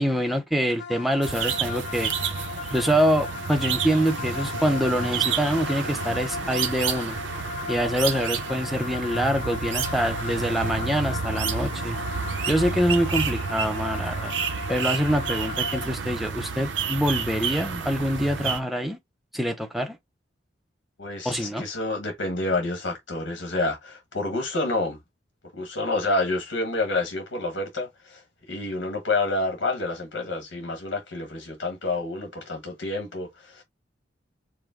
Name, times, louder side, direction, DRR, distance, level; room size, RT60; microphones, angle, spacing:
voice 1, 0.0-2.1 2.6-7.2 7.7-12.0 12.5-14.3 14.7-19.0 19.3-20.0 21.2-21.6, equal, ahead, 0.6 m, -25 dB
sound 1, 0.8-15.9, left 5 dB, 60° left, 0.8 m, -37 dB
sound 2, 1.2-18.6, right 6 dB, 80° right, 0.7 m, -30 dB
voice 2, 21.0-25.0 25.5-33.6, left 2 dB, 85° left, 1.3 m, -28 dB
4.9 x 2.1 x 3.7 m
head